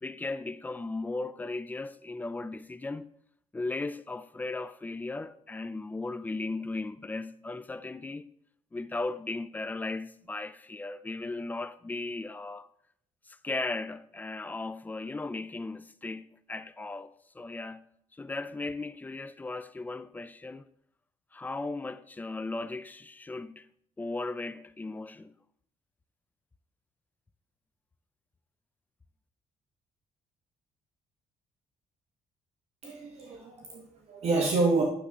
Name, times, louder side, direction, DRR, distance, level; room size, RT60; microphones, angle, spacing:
voice 1, 0.0-3.1 3.5-8.3 8.7-12.7 13.3-17.9 18.1-20.7 21.3-23.7 24.0-25.4, left 3 dB, 15° left, 0.4 m, -36 dB
voice 2, 32.8-34.8, right 3 dB, 50° right, 1.4 m, -28 dB
10.5 x 6.9 x 3.7 m
cardioid pair, 130°, 13 cm